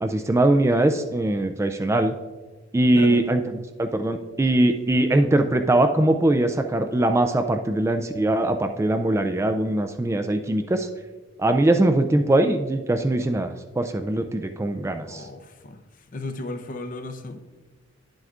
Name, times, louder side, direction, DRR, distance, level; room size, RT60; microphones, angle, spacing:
voice 1, 0.0-2.1 2.7-3.4 3.8-10.9 11.4-13.5 13.8-15.2, right 1 dB, 15° right, 7 dB, 0.3 m, -21 dB
voice 2, 15.1-15.8 16.1-17.4, left 2 dB, 45° left, 8 dB, 0.6 m, -34 dB
10.5 x 7.7 x 2.4 m, 1.2 s
head